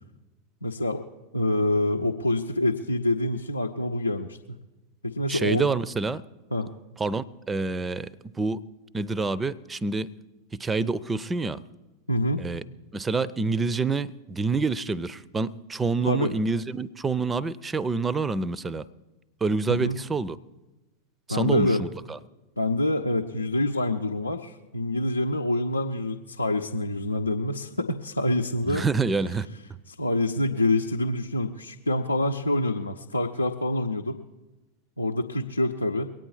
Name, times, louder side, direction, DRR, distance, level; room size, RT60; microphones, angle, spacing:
voice 1, 0.6-1.1 1.3-4.4 5.0-5.7 6.5-6.7 12.1-12.4 16.0-16.3 19.7-20.0 21.3-21.9 22.6-28.8 29.9-34.2 35.0-36.1, left 1 dB, 85° left, 1 dB, 0.7 m, -26 dB
voice 2, 5.3-6.2 7.0-8.6 8.9-10.1 10.5-11.6 12.4-12.6 12.9-18.8 19.4-20.4 21.3-22.2 28.7-29.5, right 4 dB, 15° right, 21 dB, 0.5 m, -27 dB
22.5 x 9.1 x 4.7 m, 1.1 s
figure-of-eight pair, 90°, 0 cm